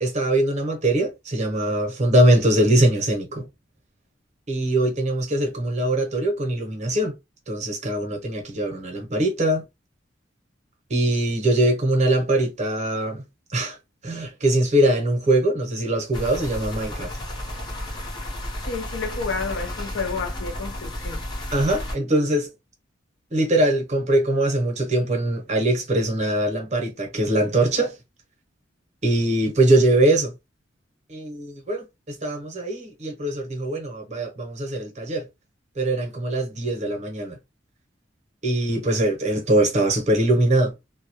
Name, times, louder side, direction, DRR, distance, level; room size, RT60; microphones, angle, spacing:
voice 1, 0.0-3.5 4.5-7.2 7.5-9.6 10.9-13.2 13.5-13.8 14.0-17.2 21.5-22.5 23.3-27.9 29.0-30.3 31.1-35.3 35.8-37.4 38.4-40.7, right 1 dB, 40° right, 0.8 m, -22 dB
sound 1, 16.1-22.0, left 1 dB, 25° left, 0.8 m, -32 dB
voice 2, 18.6-21.2, left 4 dB, 70° left, 0.6 m, -30 dB
2.2 x 2.1 x 2.8 m
head